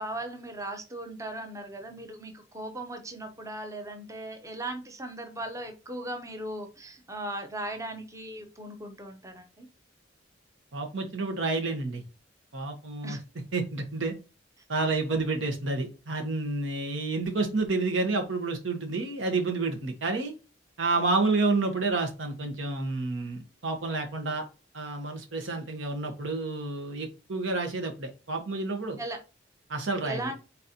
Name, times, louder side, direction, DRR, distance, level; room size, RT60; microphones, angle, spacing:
voice 1, 0.0-9.7 13.0-13.2 29.0-29.2 30.0-30.4, right 1 dB, 15° right, 5 dB, 0.6 m, -38 dB
voice 2, 10.7-12.0 12.5-13.2 13.5-14.1 14.7-20.3 20.8-24.4 24.7-29.0 29.7-30.3, right 3 dB, 90° right, 4 dB, 1.2 m, -29 dB
4.1 x 4.0 x 2.8 m, 0.31 s
head